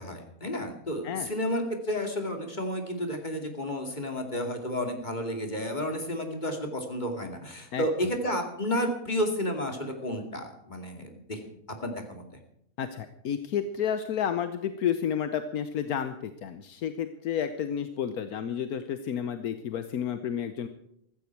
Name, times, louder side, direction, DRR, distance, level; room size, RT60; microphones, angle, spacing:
voice 1, 0.0-11.6 11.8-12.2, equal, 30° left, 4 dB, 2.6 m, -31 dB
voice 2, 12.8-20.7, left 8 dB, 85° left, 10 dB, 1.4 m, -31 dB
15.5 x 14.5 x 4.6 m, 0.74 s
omnidirectional pair, 1.5 m